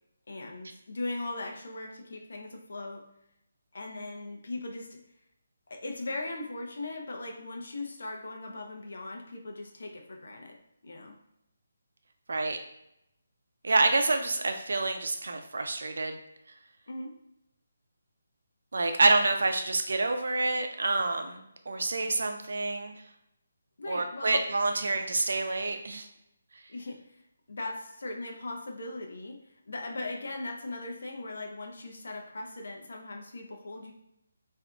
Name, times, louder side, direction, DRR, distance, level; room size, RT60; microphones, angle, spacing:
voice 1, 0.3-3.0 3.7-5.0 5.7-10.6 10.8-11.1 16.9-17.1 23.8-24.4 26.7-27.2 27.5-29.4 29.7-33.9, left 2 dB, 70° left, 2 dB, 0.6 m, -39 dB
voice 2, 13.6-16.2 18.7-23.0 23.9-26.1, right 2 dB, 75° right, 5 dB, 0.5 m, -27 dB
3.7 x 2.6 x 2.3 m, 0.81 s
figure-of-eight pair, 160°, 0 cm